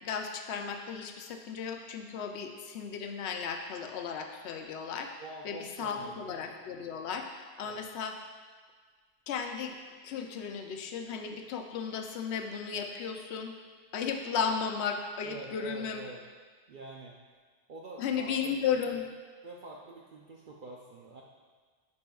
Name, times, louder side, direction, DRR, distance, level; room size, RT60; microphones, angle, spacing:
voice 1, 0.0-5.1 5.4-8.2 9.3-9.7 10.0-13.5 13.9-16.0 18.0-19.0, left 6 dB, 80° left, 4 dB, 0.9 m, -35 dB
voice 2, 5.2-6.4 7.6-7.8 15.2-16.2 16.7-17.2 17.7-18.6 19.4-21.2, right 3 dB, 55° right, -2 dB, 0.7 m, -46 dB
9.4 x 5.4 x 2.3 m, 1.5 s
omnidirectional pair, 1.1 m